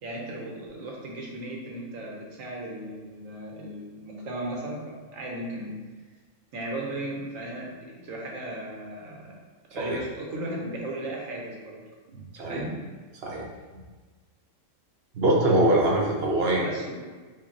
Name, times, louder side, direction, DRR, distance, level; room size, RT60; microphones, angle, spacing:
voice 1, 0.0-5.8 6.5-9.3 9.7-11.8 12.4-12.8 13.3-13.4 16.5-17.0, right 1 dB, 80° right, -2 dB, 1.3 m, -36 dB
voice 2, 12.1-12.6 13.2-13.5 15.1-16.6, right 1 dB, 55° right, -2 dB, 0.9 m, -23 dB
5.7 x 2.3 x 3.9 m, 1.4 s
omnidirectional pair, 1.4 m